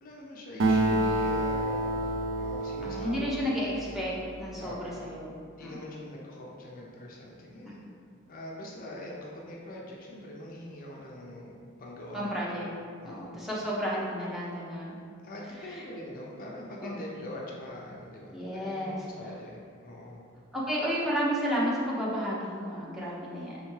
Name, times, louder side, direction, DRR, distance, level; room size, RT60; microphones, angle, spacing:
voice 1, 0.0-3.3 4.6-4.8 5.6-7.9 8.3-12.3 13.0-13.3 15.2-20.2, left 1 dB, 45° left, -2 dB, 0.4 m, -43 dB
Acoustic guitar, 0.6-4.4, right 1 dB, 65° right, 0.4 m, -29 dB
voice 2, 2.8-4.1 4.4-5.3 5.6-5.8 12.1-12.7 13.0-15.0 15.6-15.8 16.8-16.9 18.3-19.0 20.5-23.6, equal, ahead, -7 dB, 0.6 m, -32 dB
3.5 x 3.3 x 3.2 m, 2.2 s
head